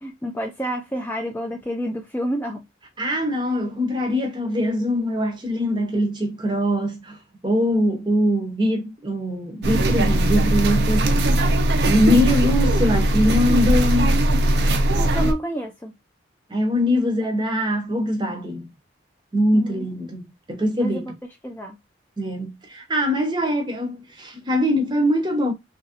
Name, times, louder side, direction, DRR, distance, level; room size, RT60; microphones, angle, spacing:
voice 1, 0.0-2.6 15.0-15.9 19.5-19.9 20.8-21.0 21.4-21.8, equal, 10° left, 0.3 m, -29 dB
voice 2, 3.0-7.2 7.4-11.3 11.9-14.2 16.5-18.7 19.3-21.1 22.2-25.5, left 1 dB, 25° right, 0.7 m, -22 dB
sound 1, 9.6-15.3, right 1 dB, 60° right, 0.5 m, -19 dB
2.8 x 2.6 x 2.8 m
head